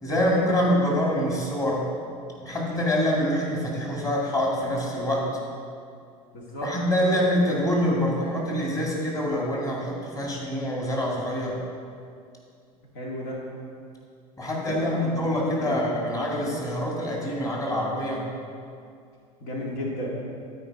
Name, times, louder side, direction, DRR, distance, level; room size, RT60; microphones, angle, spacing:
voice 1, 0.0-1.8 2.4-5.3 6.6-11.6 14.4-18.2, equal, 20° left, -3 dB, 2.3 m, -25 dB
voice 2, 6.3-6.7 13.0-13.4 14.7-15.2 15.6-15.8 19.4-20.1, left 1 dB, 60° left, -3 dB, 1.9 m, -33 dB
13.0 x 4.7 x 4.9 m, 2.3 s
hypercardioid pair, 85°, 19 cm